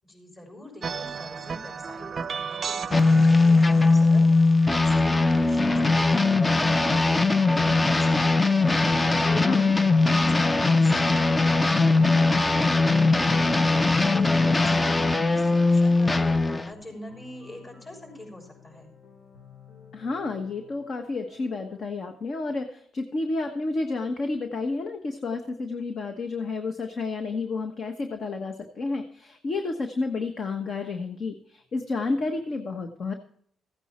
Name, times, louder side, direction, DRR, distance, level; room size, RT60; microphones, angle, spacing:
voice 1, 0.0-13.6 14.1-18.9, left 1 dB, 35° left, 2 dB, 6.2 m, -44 dB
sound 1, 0.8-6.2, right 6 dB, 45° right, 0.5 m, -36 dB
sound 2, 2.9-16.7, left 3 dB, 20° left, 0.6 m, -20 dB
voice 2, 9.4-9.7 19.9-33.1, left 3 dB, 50° left, 6 dB, 1.2 m, -30 dB
sound 3, 10.8-21.8, left 4 dB, 80° left, 4.6 m, -52 dB
15.5 x 9.1 x 4.4 m, 0.63 s
cardioid pair, 90°, 0 cm